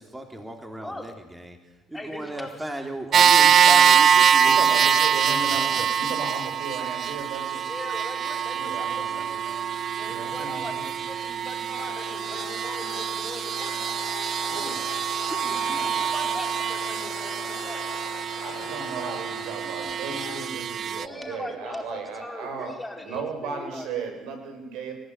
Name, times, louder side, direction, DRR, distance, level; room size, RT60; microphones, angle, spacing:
voice 1, 0.0-1.6 1.9-5.0 5.4-5.9, right 1 dB, 10° right, 4 dB, 3.3 m, -36 dB
voice 2, 1.9-2.7 5.0-5.5 7.6-13.9 15.3-17.9 20.9-24.0, left 1 dB, 10° left, 2 dB, 4.5 m, -40 dB
sound 1, 3.1-21.1, right 8 dB, 45° right, 0.7 m, -24 dB
voice 3, 4.4-7.7 8.5-9.4 10.1-10.8 14.5-14.9 18.4-24.9, right 4 dB, 80° right, 5 dB, 6.9 m, -35 dB
sound 2, 11.8-20.5, left 13 dB, 70° left, 1.3 m, -41 dB
29.5 x 15.5 x 9.5 m, 1.1 s
cardioid pair, 105°, 0 cm